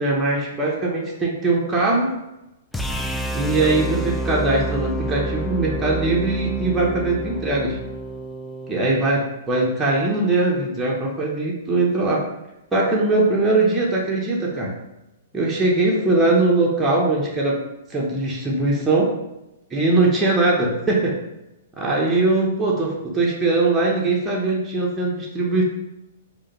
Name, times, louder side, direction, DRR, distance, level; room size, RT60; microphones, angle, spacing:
voice 1, 0.0-2.1 3.3-7.8 8.7-12.2 12.7-14.7 15.3-17.6 17.9-19.1 19.7-21.2 21.8-25.6, right 2 dB, 10° right, -3 dB, 0.8 m, -21 dB
sound 1, 2.7-8.9, right 1 dB, 5° left, 0.3 m, -28 dB
4.7 x 2.2 x 3.0 m, 0.92 s
figure-of-eight pair, 110°, 0 cm